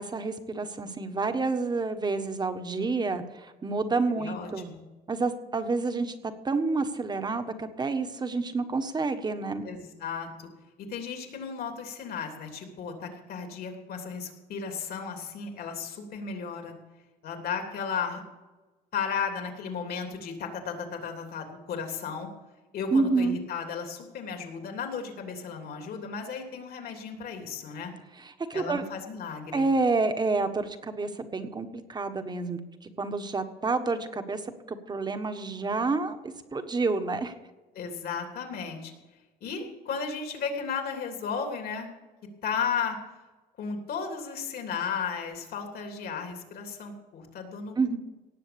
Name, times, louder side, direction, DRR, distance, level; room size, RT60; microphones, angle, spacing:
voice 1, 0.0-4.7 5.1-9.6 22.9-23.4 28.2-28.8 29.5-32.6 33.0-34.4 34.7-37.3 47.8-48.0, right 3 dB, 25° right, 9 dB, 1.4 m, -29 dB
voice 2, 4.1-4.8 9.6-10.5 10.8-16.7 17.2-18.2 18.9-22.3 22.7-27.9 28.5-29.7 37.7-38.9 39.4-41.9 42.4-43.0 43.6-48.0, left 6 dB, 65° left, 3 dB, 3.1 m, -34 dB
18.0 x 7.5 x 7.0 m, 1.2 s
cardioid pair, 110°, 17 cm